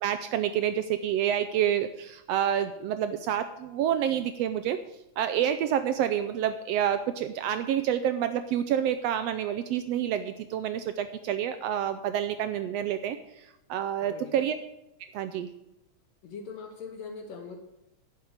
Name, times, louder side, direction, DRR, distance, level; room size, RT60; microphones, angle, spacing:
voice 1, 0.0-4.8 5.2-14.6 15.1-15.5, right 10 dB, 80° right, 10 dB, 1.4 m, -28 dB
voice 2, 14.0-14.5 16.2-17.6, left 5 dB, 65° left, 4 dB, 2.3 m, -41 dB
11.5 x 6.6 x 8.8 m, 0.88 s
omnidirectional pair, 3.4 m